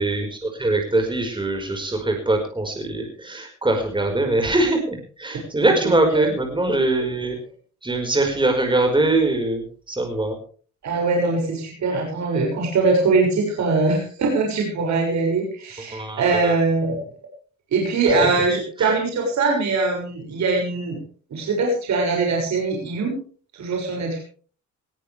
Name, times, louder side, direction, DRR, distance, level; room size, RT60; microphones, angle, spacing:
voice 1, 0.0-7.4 7.8-10.3 15.9-16.5 18.1-18.3 18.8-18.9, right 2 dB, 15° right, 3 dB, 5.1 m, -22 dB
voice 2, 5.8-6.3 10.8-17.0 17.7-21.0 21.3-23.2 23.6-24.2, right 3 dB, 65° right, 0 dB, 6.7 m, -22 dB
20.0 x 16.5 x 3.5 m, 0.41 s
cardioid pair, 90°, 30 cm